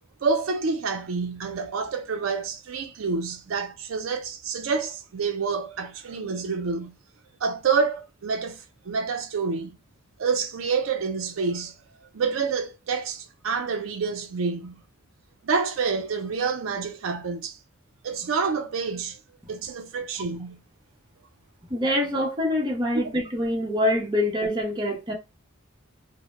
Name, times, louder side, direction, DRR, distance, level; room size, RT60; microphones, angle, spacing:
voice 1, 0.2-6.9 7.4-9.8 10.2-11.7 12.1-14.8 15.4-17.6 18.0-19.2 19.5-20.6, right 5 dB, 80° right, 0.4 m, -28 dB
voice 2, 21.7-25.1, left 1 dB, 20° right, 0.6 m, -25 dB
2.0 x 2.0 x 3.0 m
head